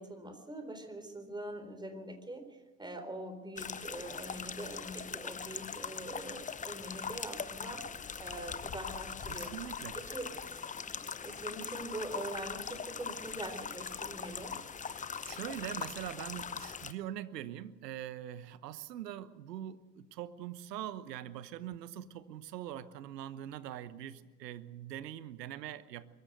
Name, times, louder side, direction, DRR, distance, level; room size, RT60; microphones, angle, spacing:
voice 1, 0.0-2.4 2.8-9.5 9.9-10.3 11.2-14.6, right 1 dB, 10° right, 8 dB, 3.8 m, -43 dB
sound 1, 3.6-16.9, left 6 dB, 15° left, 0.8 m, -41 dB
voice 2, 9.3-10.2 14.9-26.1, right 11 dB, 75° right, 14 dB, 1.2 m, -43 dB
23.5 x 14.5 x 8.0 m, 1.2 s
hypercardioid pair, 85°, 49 cm